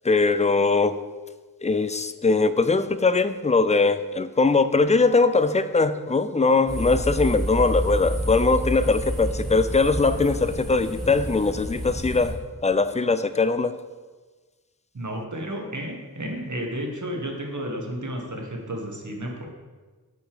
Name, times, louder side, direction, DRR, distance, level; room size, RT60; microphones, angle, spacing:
voice 1, 0.0-1.0 1.6-13.8, left 3 dB, 20° left, 12 dB, 0.4 m, -21 dB
sound 1, 6.7-12.3, equal, ahead, 1.9 m, -29 dB
voice 2, 14.9-19.5, equal, 55° right, 1 dB, 1.4 m, -32 dB
6.6 x 4.9 x 4.9 m, 1.3 s
wide cardioid pair, 45°, 37 cm